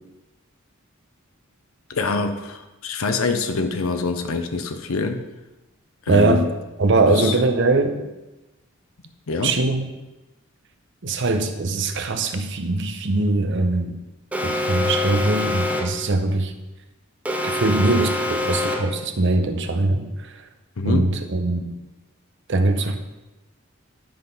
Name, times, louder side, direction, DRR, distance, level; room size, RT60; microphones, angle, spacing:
voice 1, 1.9-5.2 6.1-6.5 7.2-7.3 9.3-9.5 11.0-11.1 20.8-21.1, left 4 dB, 80° left, 7 dB, 0.7 m, -25 dB
voice 2, 6.1-6.5 6.8-8.0 9.4-9.9 11.0-14.0 14.4-16.5 17.4-20.5 20.8-21.7 22.5-23.0, right 2 dB, 55° right, 7 dB, 0.7 m, -21 dB
Alarm, 14.3-16.1 17.3-19.0, left 2 dB, 5° right, 0.6 m, -25 dB
10.5 x 4.0 x 5.3 m, 1.0 s
head